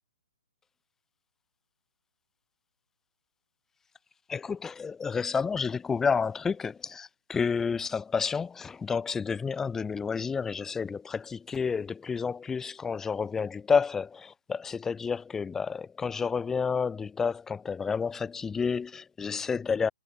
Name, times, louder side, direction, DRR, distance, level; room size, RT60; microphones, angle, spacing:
voice 1, 4.3-19.9, left 5 dB, 10° left, 1.6 m, -30 dB
figure-of-eight pair, 125°, 4 cm